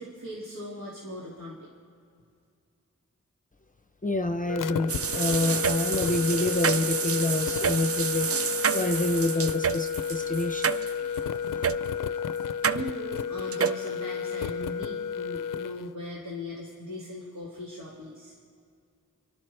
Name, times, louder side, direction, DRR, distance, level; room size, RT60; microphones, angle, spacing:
voice 1, 0.0-1.7 12.7-18.4, left 1 dB, 85° right, -6 dB, 2.2 m, -39 dB
voice 2, 4.0-8.3 8.7-10.7 11.5-11.6, left 2 dB, 25° left, 7 dB, 0.6 m, -27 dB
sound 1, 4.5-15.8, left 7 dB, 80° left, 0.5 m, -32 dB
sound 2, 4.9-11.2 11.6-11.8 12.6-12.8 13.5-13.8, right 7 dB, 50° right, 0.5 m, -28 dB
28.5 x 11.5 x 3.3 m, 2.3 s
cardioid pair, 45°, 32 cm